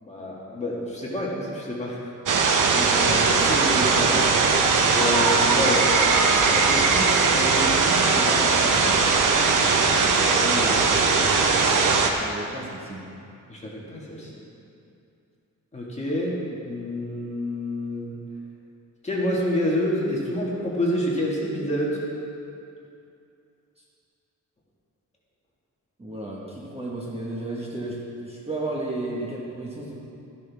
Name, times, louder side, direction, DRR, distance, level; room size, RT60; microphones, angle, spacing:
voice 1, 0.0-2.0 3.0-3.1 4.9-5.8 10.1-11.5 13.5-14.3 15.7-18.1 19.0-22.0, left 1 dB, 20° left, -5 dB, 1.7 m, -28 dB
sound 1, 2.3-12.1, right 4 dB, 70° right, 1.0 m, -20 dB
voice 2, 2.7-4.3 6.5-8.9 12.2-13.0 26.0-29.9, right 1 dB, 20° right, -5 dB, 1.4 m, -32 dB
13.0 x 10.5 x 3.5 m, 2.6 s
wide cardioid pair, 175°, 32 cm